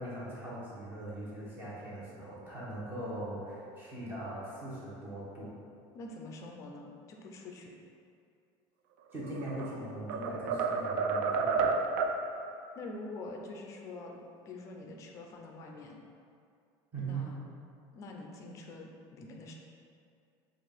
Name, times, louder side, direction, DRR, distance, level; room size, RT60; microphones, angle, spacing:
voice 1, 0.0-5.5 9.1-11.8 16.9-17.3, right 1 dB, 20° right, -8 dB, 1.0 m, -40 dB
voice 2, 5.9-7.7 12.8-14.2 14.5-16.0 17.0-17.4 17.9-19.5, left 2 dB, 30° left, 1 dB, 0.4 m, -45 dB
sound 1, 9.2-9.7 10.1-12.2, right 5 dB, 85° right, 0.4 m, -30 dB
6.0 x 2.5 x 3.4 m, 2.4 s
cardioid pair, 180°, 11 cm